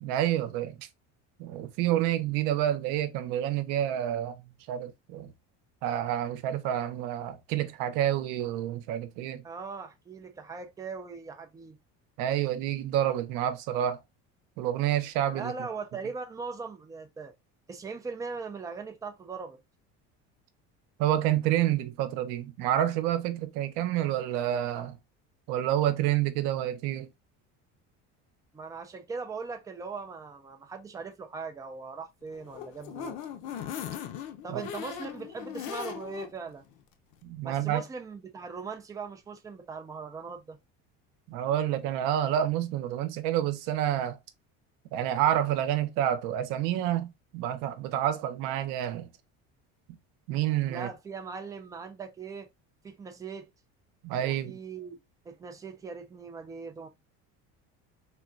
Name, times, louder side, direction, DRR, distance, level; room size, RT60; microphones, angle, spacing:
voice 1, 0.0-0.8 1.4-4.4 4.7-5.3 5.8-9.4 12.2-14.0 14.6-15.5 21.0-25.0 25.5-27.1 34.5-34.6 37.2-37.8 41.3-44.2 44.9-49.1 50.3-50.9 54.0-54.6, right 11 dB, 85° right, 0.7 m, -28 dB
voice 2, 9.4-11.8 15.3-17.3 17.7-19.6 28.5-33.2 34.4-36.6 37.4-40.6 50.7-52.5 52.8-53.5 54.2-55.0 55.3-56.9, right 4 dB, 10° right, 0.3 m, -40 dB
sound 1, 32.3-36.3 36.7-36.8 37.1-37.2, left 9 dB, 85° left, 0.6 m, -39 dB
3.6 x 2.2 x 2.5 m
cardioid pair, 155°, 33 cm